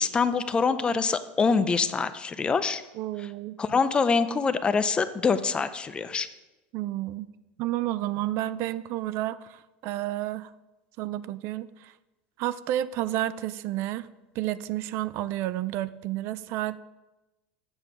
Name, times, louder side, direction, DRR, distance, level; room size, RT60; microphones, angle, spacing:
voice 1, 0.0-2.8 3.2-3.3 3.6-6.3, left 5 dB, 20° left, 12 dB, 0.5 m, -25 dB
voice 2, 3.0-3.6 6.7-7.3 7.6-10.5 11.0-11.9 12.4-14.1 14.4-16.8, right 14 dB, 55° right, 16 dB, 0.4 m, -31 dB
7.9 x 6.6 x 5.9 m, 1.0 s
supercardioid pair, 125°, 5 cm